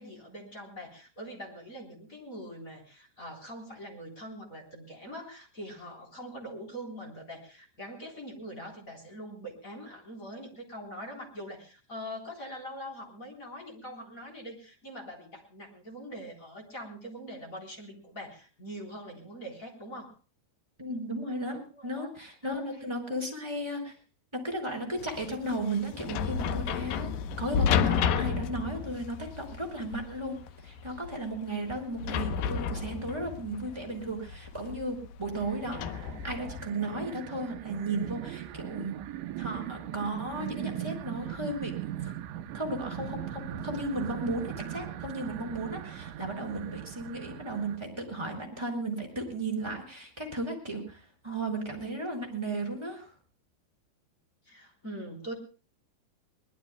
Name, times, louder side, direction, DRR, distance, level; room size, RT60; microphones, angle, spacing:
voice 1, 0.0-20.1 21.7-22.1 22.4-22.6 54.4-55.3, equal, 20° left, 2 dB, 3.4 m, -43 dB
voice 2, 20.8-23.9 24.3-27.1 27.4-30.4 30.6-39.0 39.4-41.7 42.0-42.1 42.5-53.1, right 1 dB, 5° right, 1 dB, 4.4 m, -35 dB
sound 1, 25.0-36.7, left 7 dB, 80° left, 2.0 m, -32 dB
sound 2, 35.4-47.8, right 12 dB, 85° right, 3.3 m, -40 dB
23.5 x 20.0 x 2.2 m, 0.35 s
omnidirectional pair, 5.2 m